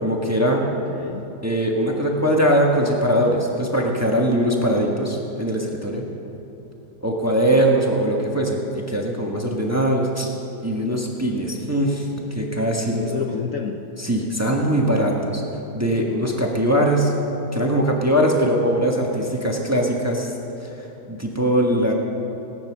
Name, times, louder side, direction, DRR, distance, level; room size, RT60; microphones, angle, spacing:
voice 1, 0.0-0.7 1.4-6.1 7.0-10.3 10.6-13.1 14.0-15.4 15.7-17.1 17.5-20.3 20.6-20.7 21.1-21.9, right 1 dB, 10° right, -1 dB, 1.2 m, -21 dB
voice 2, 0.7-1.3 12.9-13.8 21.7-21.9, left 7 dB, 60° left, 3 dB, 1.0 m, -30 dB
18.0 x 9.3 x 6.1 m, 3.0 s
omnidirectional pair, 1.9 m